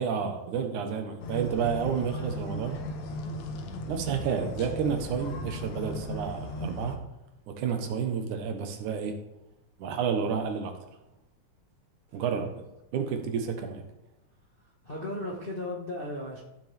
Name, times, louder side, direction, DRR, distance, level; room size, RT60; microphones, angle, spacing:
voice 1, 0.0-2.8 3.9-7.0 7.5-9.2 9.8-10.7 12.1-12.5 12.9-13.8, right 7 dB, 80° right, 6 dB, 2.6 m, -30 dB
sound 1, 1.2-7.0, left 1 dB, 70° left, 2.2 m, -36 dB
voice 2, 14.6-16.4, left 1 dB, 45° left, -3 dB, 0.7 m, -37 dB
14.5 x 7.7 x 3.5 m, 0.94 s
omnidirectional pair, 3.5 m